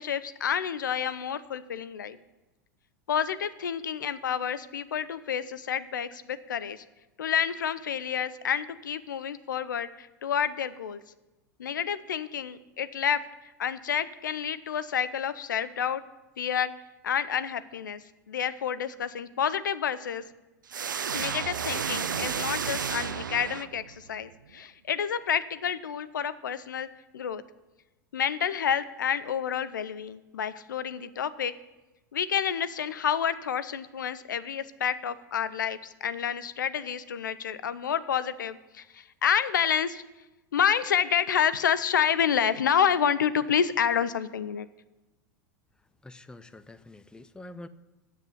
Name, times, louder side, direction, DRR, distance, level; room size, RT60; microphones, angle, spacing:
voice 1, 0.0-2.2 3.1-6.8 7.2-11.0 11.6-13.2 13.6-16.0 16.4-16.7 17.0-20.2 21.1-26.9 27.1-27.4 28.1-31.5 32.1-40.0 40.5-44.7, left 8 dB, 80° left, 15 dB, 0.5 m, -29 dB
sound 1, 20.7-24.1, right 7 dB, 90° right, 0.4 m, -32 dB
voice 2, 45.8-47.7, left 2 dB, 10° left, 13 dB, 0.5 m, -46 dB
7.6 x 7.3 x 7.9 m, 1.1 s
hypercardioid pair, 95°, 10 cm